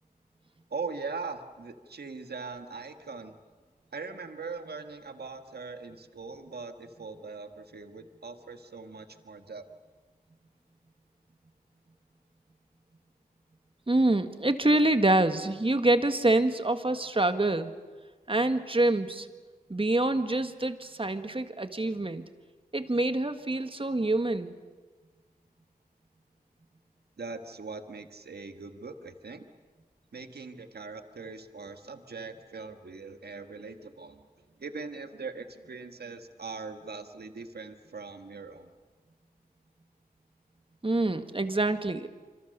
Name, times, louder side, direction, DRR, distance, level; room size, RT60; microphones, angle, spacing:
voice 1, 0.7-3.4 3.9-9.7 27.2-29.5 30.1-34.3 34.6-38.7, right 4 dB, 80° right, 7 dB, 1.7 m, -41 dB
voice 2, 13.9-17.7 18.3-19.3 19.7-22.2 22.7-24.5 40.8-42.1, right 2 dB, 35° right, 8 dB, 1.7 m, -26 dB
27.0 x 25.5 x 6.8 m, 1.4 s
cardioid pair, 45°, 16 cm